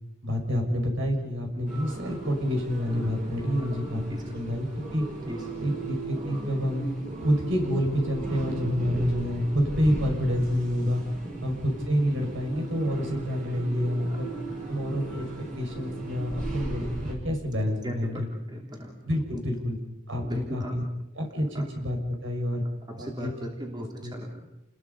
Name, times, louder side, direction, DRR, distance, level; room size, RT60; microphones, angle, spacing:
voice 1, 0.2-4.0 4.3-5.1 5.6-6.8 7.2-11.0 11.4-14.3 14.7-15.3 15.6-18.3 19.0-19.8 20.1-20.8 21.1-22.6 23.0-23.3 24.0-24.1, equal, 65° right, 2 dB, 5.9 m, -28 dB
sound 1, 1.7-17.1, right 2 dB, 40° right, 7.6 m, -37 dB
voice 2, 17.8-18.3 18.5-18.9 20.2-20.7 21.5-21.6 22.9-24.4, equal, 20° right, 0 dB, 3.2 m, -37 dB
29.5 x 21.0 x 5.5 m, 0.90 s
head